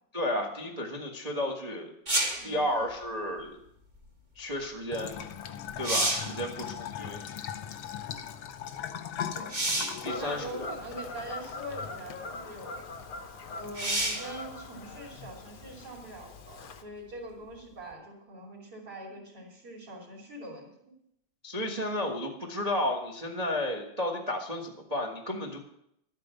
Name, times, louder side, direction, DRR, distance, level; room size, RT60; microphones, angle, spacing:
voice 1, 0.1-1.9 2.4-3.6 4.3-5.2 5.8-7.2 10.0-10.7 21.4-25.7, left 1 dB, 75° right, 2 dB, 0.3 m, -32 dB
sound 1, 2.1-2.5 5.2-5.3 5.7-6.4 9.5-10.0 11.1-11.2 13.7-14.3 17.9-18.0, right 1 dB, 25° right, 1.0 m, -29 dB
Bathtub (filling or washing) / Trickle dribble, 4.9-15.9, left 8 dB, 65° left, 1.3 m, -41 dB
voice 2, 9.2-9.5 10.0-12.8 13.6-20.9 22.2-22.3, right 1 dB, 45° right, -4 dB, 3.8 m, -43 dB
Fowl / Bird vocalization bird call bird song, 10.1-16.8, left 3 dB, 85° left, 0.8 m, -42 dB
12.0 x 9.0 x 6.8 m, 0.76 s
omnidirectional pair, 3.4 m